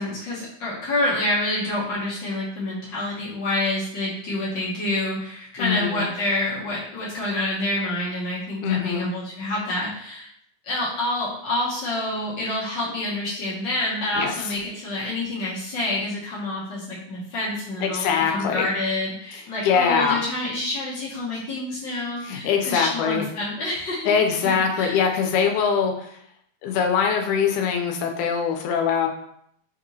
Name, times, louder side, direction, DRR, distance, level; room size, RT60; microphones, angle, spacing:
voice 1, 0.0-10.3 10.6-24.1 24.4-25.0, left 1 dB, 65° left, -7 dB, 1.1 m, -27 dB
voice 2, 5.6-6.0 8.6-9.1 14.2-14.5 17.8-18.7 19.6-20.2 22.2-23.3 24.1-26.2 26.6-29.1, left 6 dB, 85° left, 3 dB, 2.0 m, -23 dB
5.2 x 2.8 x 2.6 m, 0.69 s
omnidirectional pair, 3.6 m